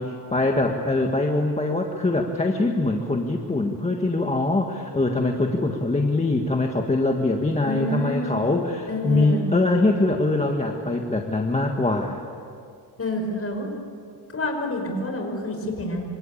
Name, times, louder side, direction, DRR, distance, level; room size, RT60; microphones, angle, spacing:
voice 1, 0.0-12.2, left 2 dB, 15° left, 2 dB, 1.7 m, -23 dB
voice 2, 7.6-8.4 8.9-9.4 13.0-13.7 14.3-16.0, left 1 dB, 35° left, 3 dB, 5.6 m, -28 dB
26.5 x 26.0 x 8.6 m, 2.4 s
cardioid pair, 140°, 42 cm